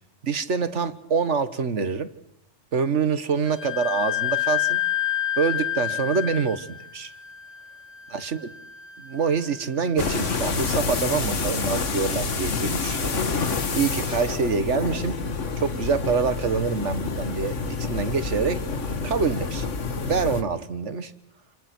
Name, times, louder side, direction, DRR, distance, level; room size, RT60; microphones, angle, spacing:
voice 1, 0.2-2.1 2.7-4.8 5.4-6.7 6.9-7.1 8.1-8.4 9.0-15.1 15.6-18.6 19.0-19.7 20.0-21.1, right 5 dB, 75° right, 12 dB, 1.9 m, -26 dB
Wind instrument woodwind instrument, 3.5-10.9, left 13 dB, 20° left, 2.6 m, -30 dB
sound 1, 10.0-20.4, left 4 dB, 90° left, 2.0 m, -28 dB
29.5 x 27.5 x 6.3 m, 0.78 s
omnidirectional pair, 1.2 m